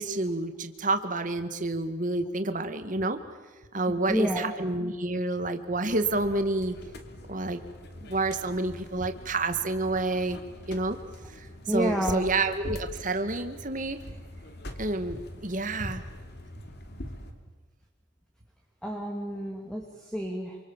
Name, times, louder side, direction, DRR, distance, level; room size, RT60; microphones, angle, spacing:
voice 1, 0.0-3.2 3.7-6.8 7.3-7.6 8.0-10.4 10.7-11.0 11.7-14.0 14.8-16.0, right 2 dB, 40° right, 8 dB, 1.9 m, -29 dB
voice 2, 3.9-4.6 11.7-12.2 18.8-20.6, equal, 5° left, 1 dB, 2.6 m, -30 dB
sound 1, 5.9-17.3, left 1 dB, 55° left, 2.9 m, -43 dB
28.5 x 26.5 x 7.4 m, 1.4 s
head